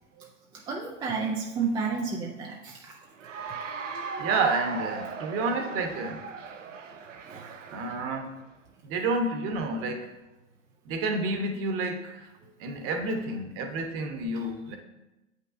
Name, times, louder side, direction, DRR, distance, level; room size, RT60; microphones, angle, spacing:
voice 1, 0.5-3.0 7.3-7.5, right 5 dB, 10° right, -1 dB, 0.4 m, -31 dB
Cheering / Applause, 3.2-8.3, right 5 dB, 80° right, 0.8 m, -38 dB
voice 2, 4.2-6.2 7.7-8.3 8.8-10.1 10.8-12.3 12.6-14.8, right 3 dB, 35° right, 5 dB, 1.1 m, -30 dB
7.7 x 5.4 x 2.6 m, 0.98 s
hypercardioid pair, 105°, 38 cm